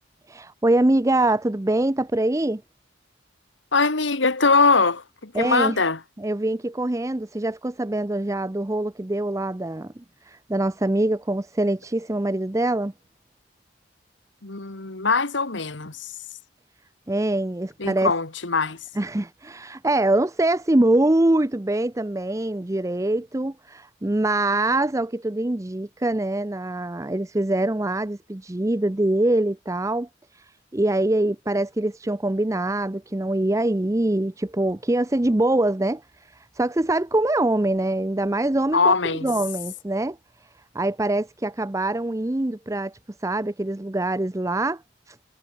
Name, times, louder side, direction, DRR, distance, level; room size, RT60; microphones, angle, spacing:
voice 1, 0.3-2.6 5.3-5.9 6.2-9.9 10.2-12.9 17.1-18.1 19.0-38.9 39.2-40.2 40.7-44.8 45.1-45.2, right 1 dB, 15° right, 0.6 m, -24 dB
voice 2, 3.7-6.0 14.4-16.1 17.8-18.8 38.7-39.3, left 4 dB, 70° left, 2.0 m, -22 dB
head